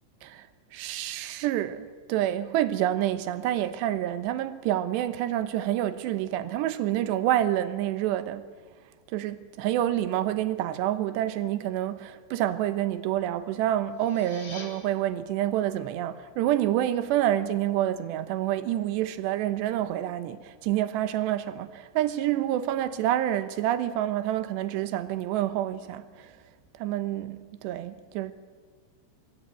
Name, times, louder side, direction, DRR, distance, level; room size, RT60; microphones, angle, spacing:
voice 1, 0.7-8.5 9.1-26.3 26.8-28.3, right 12 dB, 75° right, 3.0 m, -28 dB
sound 1, 13.8-14.7, left 3 dB, 35° left, 3.5 m, -44 dB
24.5 x 21.5 x 9.1 m
omnidirectional pair, 5.6 m